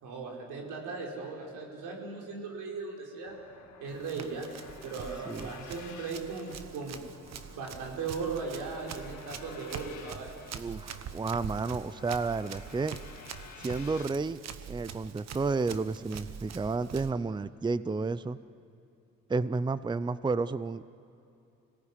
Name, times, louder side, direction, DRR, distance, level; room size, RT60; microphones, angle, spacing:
voice 1, 0.0-3.3 3.8-4.5 4.8-7.0 7.5-10.4, right 4 dB, 90° right, -1 dB, 5.1 m, -38 dB
sound 1, 3.2-14.1, left 7 dB, 70° left, 1.9 m, -52 dB
Run, 3.9-17.1, right 7 dB, 60° right, 1.3 m, -44 dB
voice 2, 10.5-13.0 13.6-14.4 14.7-18.4 19.3-20.9, right 4 dB, 15° right, 15 dB, 0.6 m, -31 dB
25.5 x 18.0 x 9.9 m, 2.6 s
cardioid pair, 90°, 30 cm